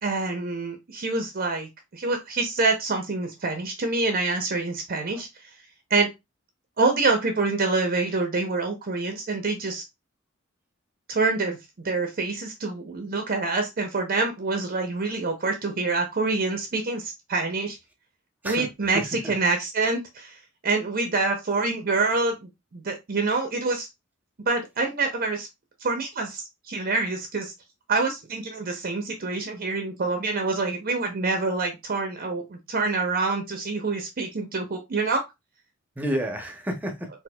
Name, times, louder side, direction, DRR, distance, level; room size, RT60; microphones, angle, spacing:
voice 1, 0.0-5.3 5.9-6.1 6.8-9.8 11.1-11.6 11.8-17.8 18.4-19.0 19.3-20.4 20.6-23.9 24.5-25.5 25.8-27.5 27.9-35.2, right 3 dB, 45° right, 4 dB, 0.6 m, -26 dB
voice 2, 18.4-19.3 36.0-37.1, right 1 dB, 10° right, 4 dB, 0.7 m, -30 dB
4.2 x 2.5 x 2.2 m, 0.21 s
head